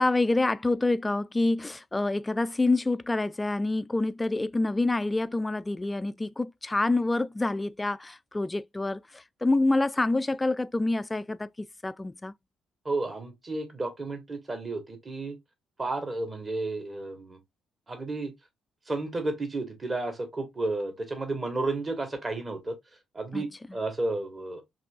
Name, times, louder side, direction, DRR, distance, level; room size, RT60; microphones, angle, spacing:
voice 1, 0.0-12.3 23.3-23.4, left 2 dB, 20° left, 0.3 m, -27 dB
voice 2, 12.8-15.4 15.8-17.4 17.9-18.3 18.9-22.8 23.1-24.6, right 2 dB, 30° right, 1.4 m, -32 dB
5.8 x 2.7 x 2.3 m
figure-of-eight pair, 45°, 0 cm